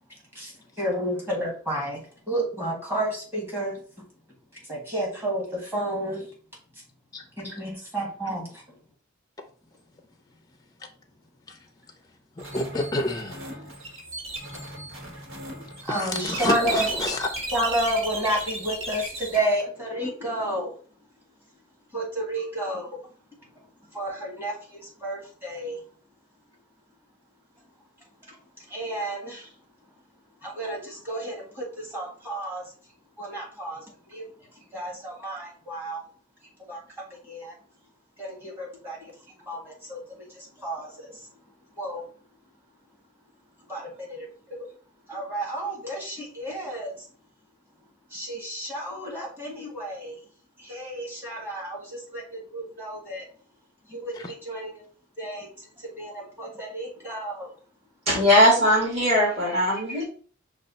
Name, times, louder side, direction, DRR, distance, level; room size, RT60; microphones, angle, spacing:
voice 1, 0.1-4.1 4.5-6.3 6.7-6.8 7.4-8.8 15.8-16.9 17.5-21.4 21.9-25.8 27.5-30.0 30.4-36.1 36.6-37.6 38.2-42.1 43.6-44.7 45.1-47.1 47.8-50.3 50.6-53.3 53.8-54.9 55.2-57.6, right 1 dB, 10° right, -2 dB, 1.5 m, -32 dB
sound 1, 12.4-19.4, right 2 dB, 80° right, 1.4 m, -35 dB
voice 2, 12.5-13.5 16.0-17.3, left 2 dB, 20° left, 5 dB, 0.5 m, -28 dB
voice 3, 58.1-60.0, equal, 35° right, -6 dB, 1.9 m, -19 dB
5.4 x 2.4 x 4.0 m, 0.42 s
head